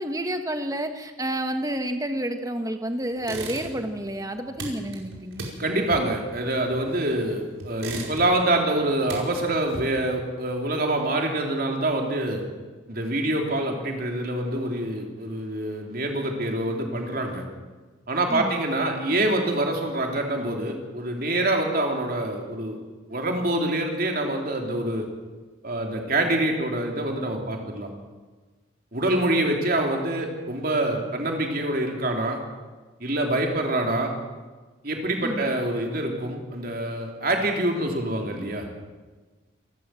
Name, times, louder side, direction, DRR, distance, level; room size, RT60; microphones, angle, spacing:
voice 1, 0.0-5.5 18.3-18.6 35.2-35.5, right 1 dB, 15° right, 7 dB, 1.4 m, -30 dB
sound 1, 3.2-7.2 7.6-8.5 8.8-10.2, right 2 dB, 85° right, 5.0 m, -37 dB
voice 2, 5.6-12.4 12.9-17.4 18.1-22.8 23.1-25.0 25.6-27.9 28.9-32.4 33.0-34.1 34.8-38.7, right 1 dB, 45° right, 2 dB, 3.3 m, -26 dB
27.0 x 13.0 x 7.7 m, 1.3 s
head